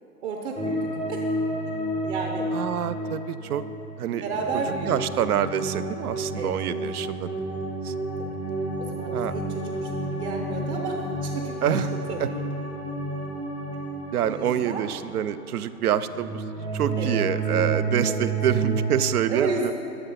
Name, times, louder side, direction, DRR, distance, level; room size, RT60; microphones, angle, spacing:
voice 1, 0.2-1.2 2.0-2.5 4.2-4.9 6.3-6.5 8.2-8.3 8.8-12.4 14.2-14.9 17.0-17.2 18.0-18.3 19.3-19.7, right 3 dB, 45° right, 2 dB, 1.1 m, -32 dB
sound 1, 0.6-19.0, right 2 dB, 10° right, 0.4 m, -30 dB
voice 2, 2.5-3.6 4.0-4.2 4.9-7.5 7.8-7.9 9.1-9.3 11.6-11.9 12.2-12.3 14.1-16.4 16.7-19.7, right 10 dB, 65° right, 14 dB, 0.6 m, -26 dB
11.5 x 7.0 x 5.7 m, 2.9 s
hypercardioid pair, 130°, 50 cm